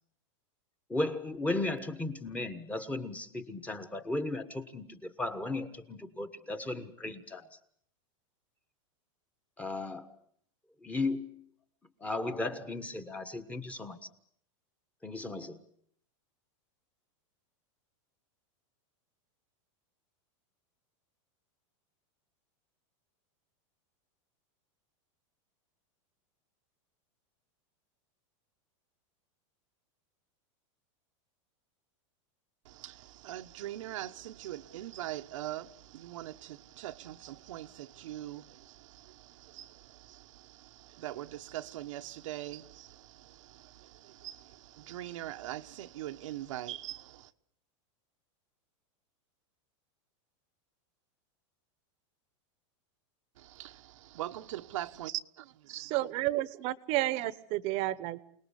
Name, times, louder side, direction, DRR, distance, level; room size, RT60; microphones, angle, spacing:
voice 1, 0.9-7.6 9.6-10.1 10.8-11.4 12.0-14.0 15.0-15.6, left 2 dB, 10° left, 1.4 m, -35 dB
voice 2, 32.6-47.3 53.4-55.9, right 14 dB, 75° right, 1.2 m, -42 dB
voice 3, 55.7-58.2, right 16 dB, 40° right, 1.1 m, -31 dB
28.0 x 19.5 x 8.3 m
supercardioid pair, 160°, 16 cm